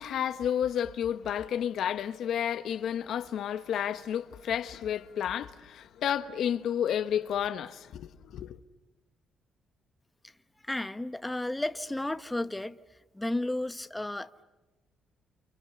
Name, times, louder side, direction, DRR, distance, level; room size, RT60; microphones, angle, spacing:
voice 1, 0.0-8.6, left 9 dB, 75° left, 1.3 m, -31 dB
voice 2, 10.6-12.8 13.1-14.4, left 1 dB, 10° left, 1.1 m, -33 dB
29.5 x 29.0 x 6.8 m
cardioid pair, 90°, 0 cm